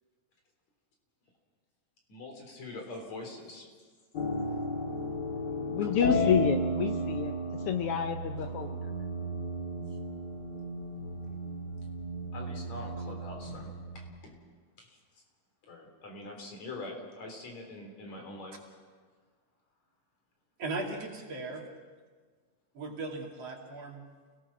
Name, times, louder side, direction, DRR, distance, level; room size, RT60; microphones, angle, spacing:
voice 1, 2.1-3.7 5.8-6.3 12.3-13.7 14.2-14.3 14.8-15.0 15.6-18.6, left 2 dB, 60° left, 2 dB, 5.0 m, -43 dB
sound 1, 4.1-14.1, equal, 35° left, 2.3 m, -34 dB
voice 2, 5.4-7.3 7.6-8.9, left 9 dB, 80° left, 7 dB, 1.2 m, -30 dB
voice 3, 20.6-21.7 22.7-24.1, right 3 dB, 55° right, 0 dB, 3.6 m, -37 dB
29.0 x 18.5 x 6.1 m, 1.5 s
omnidirectional pair, 3.6 m